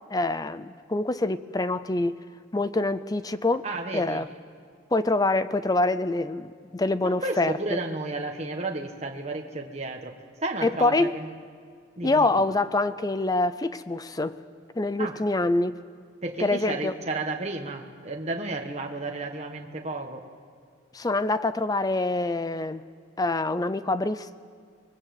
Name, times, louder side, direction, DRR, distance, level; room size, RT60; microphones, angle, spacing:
voice 1, 0.1-2.2 2.5-3.6 3.9-4.3 4.9-7.8 10.6-11.2 12.0-14.4 14.8-15.8 16.4-16.9 20.9-22.8 23.2-24.3, left 2 dB, 20° left, 13 dB, 0.5 m, -25 dB
voice 2, 3.6-4.2 7.0-11.3 12.0-12.3 15.0-15.2 16.2-20.3, right 2 dB, 35° right, 2 dB, 1.4 m, -32 dB
24.0 x 21.0 x 7.8 m, 2.2 s
head